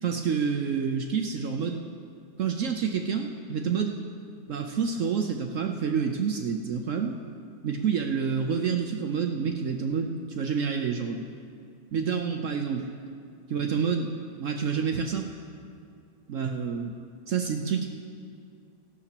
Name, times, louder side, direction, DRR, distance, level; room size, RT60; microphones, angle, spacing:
voice 1, 0.0-1.8 2.4-4.0 4.5-7.2 7.6-11.3 11.9-12.9 13.5-14.1 14.4-15.3 16.3-17.0 17.3-17.9, right 6 dB, 65° right, 4 dB, 0.8 m, -28 dB
17.0 x 12.5 x 2.9 m, 2.3 s
omnidirectional pair, 1.8 m